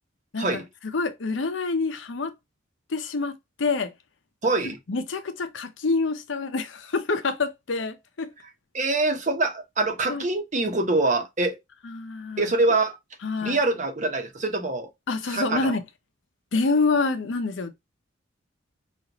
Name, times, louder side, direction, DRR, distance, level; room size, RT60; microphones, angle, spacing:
voice 1, 0.3-2.3 2.9-3.9 4.9-8.3 10.1-10.2 11.8-12.5 13.2-13.6 15.1-15.8 16.5-17.7, left 3 dB, 70° left, 0.7 m, -27 dB
voice 2, 4.4-4.8 8.7-11.6 12.4-13.0 13.4-14.9 15.3-15.8, right 2 dB, 40° right, 0.9 m, -24 dB
5.2 x 2.5 x 2.9 m
head